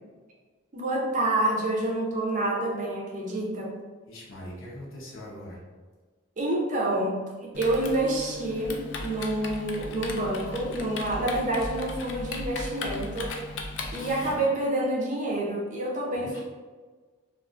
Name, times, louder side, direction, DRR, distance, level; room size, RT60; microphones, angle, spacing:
voice 1, 0.7-3.8 6.4-13.4 13.9-16.4, right 1 dB, 40° right, -2 dB, 0.4 m, -28 dB
voice 2, 4.1-5.6 14.2-14.4 16.1-16.4, equal, 80° left, -4 dB, 0.7 m, -42 dB
Typing, 7.5-14.4, left 2 dB, 65° left, 0.3 m, -37 dB
2.4 x 2.3 x 2.4 m, 1.4 s
head